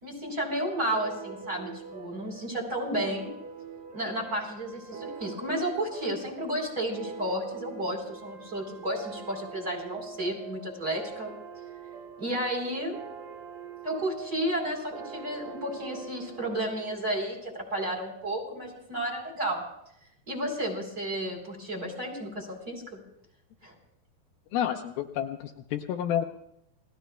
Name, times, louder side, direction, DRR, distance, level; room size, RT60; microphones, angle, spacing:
voice 1, 0.0-3.3 3.9-11.3 12.2-13.0 13.8-19.6 20.3-23.0 23.6-23.7, right 1 dB, 20° right, 0 dB, 4.2 m, -32 dB
sound 1, 0.9-18.0, right 6 dB, 65° right, 3.1 m, -44 dB
voice 2, 24.5-26.2, left 10 dB, 75° left, 3 dB, 2.4 m, -30 dB
30.0 x 18.5 x 2.3 m, 0.76 s
omnidirectional pair, 4.8 m